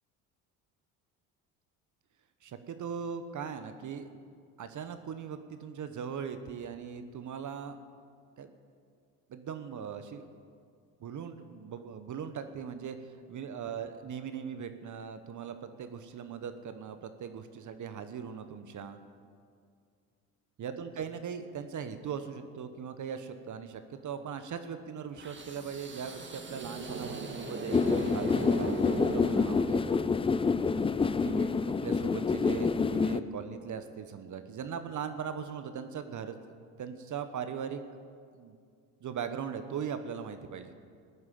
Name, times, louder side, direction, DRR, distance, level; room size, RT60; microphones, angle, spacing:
voice 1, 2.4-4.1 4.6-7.8 8.4-8.5 9.3-10.3 11.0-19.0 20.6-29.8 31.2-36.4 36.8-37.8 38.3-38.5 39.0-40.7, right 7 dB, 45° right, 9 dB, 1.2 m, -39 dB
sound 1, 25.2-30.3, right 2 dB, 25° right, 2.1 m, -38 dB
sound 2, 27.7-33.2, left 4 dB, 15° left, 0.4 m, -27 dB
15.5 x 9.5 x 7.7 m, 2.2 s
hypercardioid pair, 70°, 43 cm